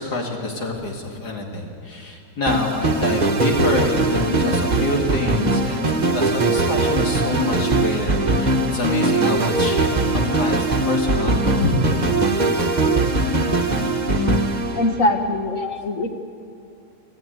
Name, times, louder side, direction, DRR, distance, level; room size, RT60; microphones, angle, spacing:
voice 1, 0.0-12.1, left 2 dB, 70° left, 0 dB, 3.0 m, -26 dB
sound 1, 2.5-15.4, right 2 dB, 30° right, 1.3 m, -21 dB
voice 2, 14.7-16.1, left 1 dB, 50° left, 5 dB, 1.8 m, -22 dB
25.5 x 14.5 x 9.4 m, 2.6 s
omnidirectional pair, 1.8 m